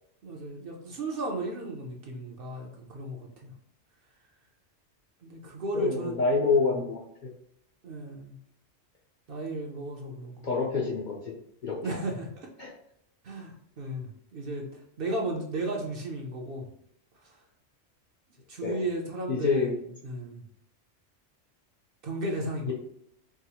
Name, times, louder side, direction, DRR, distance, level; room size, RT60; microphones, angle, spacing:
voice 1, 0.2-3.5 5.2-6.7 7.8-8.4 9.3-10.5 11.8-12.3 13.2-16.7 17.2-17.4 18.5-19.7 20.0-20.5 22.0-22.7, right 1 dB, 55° right, 0 dB, 0.7 m, -35 dB
voice 2, 5.7-7.3 10.4-11.3 11.6-12.0 12.6-12.7 18.6-18.8 19.3-19.7 22.7-22.8, left 4 dB, 50° left, -2 dB, 0.6 m, -27 dB
4.7 x 2.0 x 2.8 m, 0.72 s
omnidirectional pair, 1.3 m